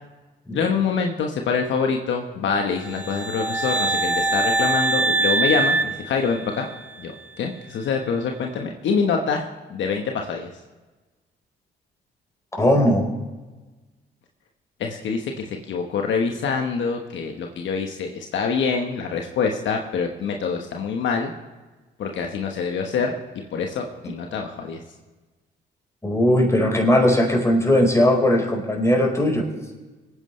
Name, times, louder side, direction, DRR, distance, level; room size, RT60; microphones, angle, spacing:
voice 1, 0.5-6.7 7.0-10.5 14.8-21.3 22.0-23.1 23.5-24.8, left 5 dB, 70° left, 3 dB, 1.3 m, -25 dB
sound 1, 2.9-6.9, right 2 dB, 10° right, 0.5 m, -23 dB
voice 2, 12.6-13.0 26.0-29.5, left 1 dB, 15° left, 0 dB, 4.6 m, -18 dB
22.5 x 9.6 x 3.3 m, 1.2 s
supercardioid pair, 55°, 20 cm